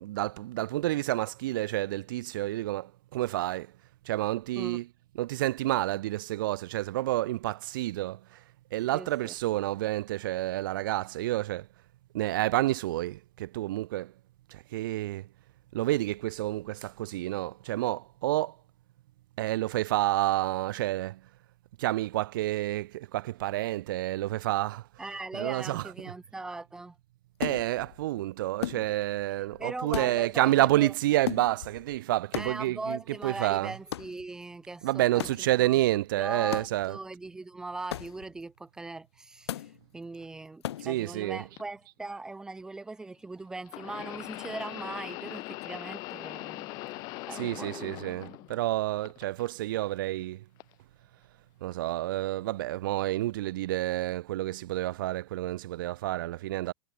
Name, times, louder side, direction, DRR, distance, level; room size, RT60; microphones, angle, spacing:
voice 1, 0.0-3.7 4.1-4.8 5.2-8.4 8.7-11.7 12.1-14.1 14.5-15.3 15.7-18.6 19.4-21.2 21.8-24.9 25.3-25.8 27.4-33.7 34.8-37.0 40.8-41.4 47.4-50.4 51.6-56.7, right 16 dB, 55° right, 0.5 m, -29 dB
voice 2, 8.9-9.3 25.0-27.0 29.6-30.9 32.3-35.3 35.6-35.8 36.2-46.7 47.3-48.0, right 3 dB, 5° right, 1.0 m, -39 dB
sound 1, 27.4-28.0 28.6-29.2 29.5-29.6 29.9-30.6 31.2-32.0 32.3-32.9 33.9-34.3 35.2-35.6 36.5-37.0 37.9-38.4 39.5-39.8 40.6-41.0, left 12 dB, 85° left, 2.6 m, -37 dB
sound 2, 41.6-41.7 43.7-48.7 49.0-49.8 50.6-50.7 51.7-51.8, left 23 dB, 30° left, 1.9 m, -41 dB
supercardioid pair, 180°, 13 cm